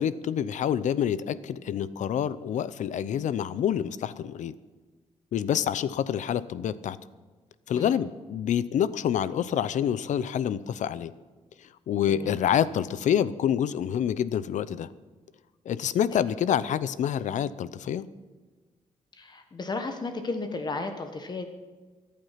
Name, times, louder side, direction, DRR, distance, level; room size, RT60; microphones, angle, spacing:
voice 1, 0.0-4.5 5.3-7.0 7.7-11.1 11.9-14.9 15.7-18.1, left 9 dB, 80° left, 16 dB, 0.7 m, -27 dB
voice 2, 12.1-12.4 19.1-21.5, left 3 dB, 35° left, 6 dB, 1.3 m, -34 dB
23.5 x 8.8 x 5.8 m, 1.3 s
cardioid pair, 125°, 12 cm